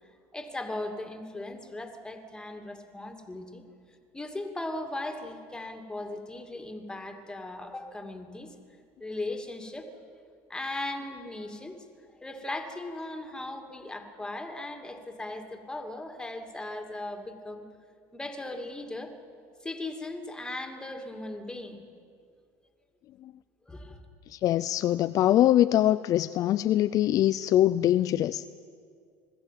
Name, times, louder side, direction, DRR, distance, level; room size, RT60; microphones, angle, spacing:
voice 1, 0.3-3.7 4.1-8.5 9.0-9.9 10.5-11.8 12.2-17.7 18.1-19.1 19.6-21.8 23.6-24.0, left 2 dB, 10° left, 5 dB, 2.5 m, -38 dB
voice 2, 24.3-28.5, left 13 dB, 50° left, 13 dB, 0.5 m, -23 dB
21.0 x 14.5 x 9.3 m, 2.2 s
supercardioid pair, 95°, 8 cm